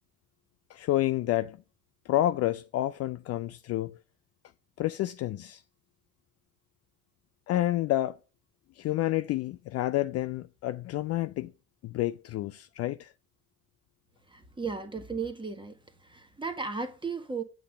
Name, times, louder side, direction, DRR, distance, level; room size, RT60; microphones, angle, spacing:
voice 1, 0.7-1.6 2.1-4.0 4.8-5.6 7.5-8.2 8.8-11.5 11.8-13.1, left 14 dB, 40° left, 0.4 m, -29 dB
voice 2, 14.3-15.8 16.0-17.4, right 4 dB, 10° right, 1.4 m, -35 dB
8.3 x 3.8 x 6.2 m
hypercardioid pair, 55°, 39 cm